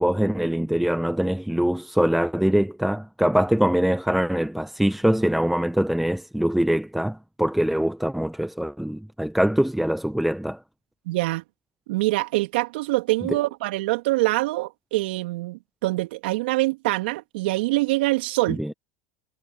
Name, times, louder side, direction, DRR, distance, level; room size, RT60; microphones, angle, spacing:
voice 1, 0.0-10.6 13.3-13.4 18.6-18.7, equal, ahead, 1.0 m, -23 dB
voice 2, 11.1-11.4 11.9-18.6, right 20 dB, 70° right, 2.8 m, -24 dB
hypercardioid pair, 95°, 6 cm